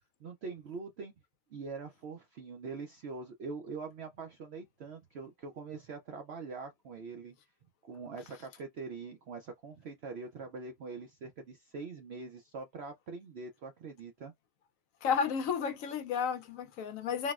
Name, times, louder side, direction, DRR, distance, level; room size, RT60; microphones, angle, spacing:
voice 1, 0.2-1.1 1.5-7.3 7.8-14.3, right 4 dB, 70° right, 0.6 m, -43 dB
voice 2, 15.0-17.3, left 6 dB, 70° left, 0.9 m, -32 dB
3.9 x 2.0 x 2.3 m
omnidirectional pair, 1.6 m